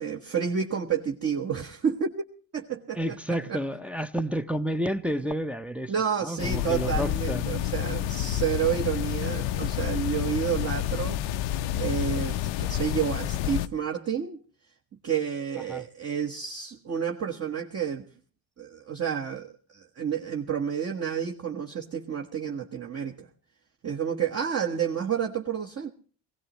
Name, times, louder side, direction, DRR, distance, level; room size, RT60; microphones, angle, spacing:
voice 1, 0.0-2.1 2.5-3.2 3.5-3.6 5.2-5.3 5.9-11.2 11.7-14.4 15.0-18.0 18.6-23.3 23.8-25.9, right 8 dB, 35° right, 1.3 m, -30 dB
voice 2, 2.9-5.9 6.2-7.4 15.7-15.8, equal, 5° right, 0.7 m, -30 dB
sound 1, 6.4-13.7, left 12 dB, 80° left, 0.8 m, -29 dB
20.5 x 16.5 x 3.0 m
cardioid pair, 115°, 44 cm